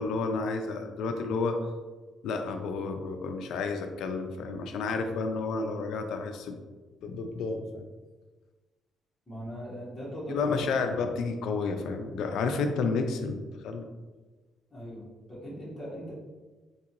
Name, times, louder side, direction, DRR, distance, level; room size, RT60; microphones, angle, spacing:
voice 1, 0.0-1.6 2.2-6.5 7.0-7.8 10.3-13.9, left 4 dB, 75° left, 6 dB, 0.4 m, -31 dB
voice 2, 9.3-10.7 14.7-16.1, equal, 15° left, -7 dB, 1.3 m, -39 dB
3.7 x 2.9 x 3.0 m, 1.3 s
cardioid pair, 130°, 0 cm